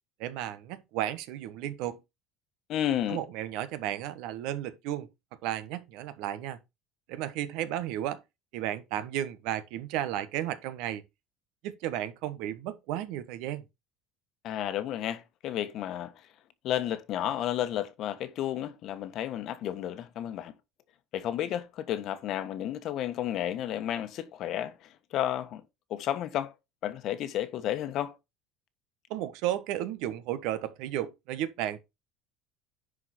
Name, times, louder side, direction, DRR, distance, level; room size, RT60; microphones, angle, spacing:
voice 1, 0.2-2.0 3.1-5.1 5.4-6.6 7.1-8.2 8.5-11.0 11.6-13.6 29.1-31.8, right 12 dB, 70° right, 1.2 m, -33 dB
voice 2, 2.7-3.2 14.4-16.2 16.6-20.5 21.1-25.6 25.9-26.6 26.8-28.2, left 11 dB, 50° left, 1.2 m, -32 dB
10.5 x 4.9 x 4.3 m
cardioid pair, 135°, 0 cm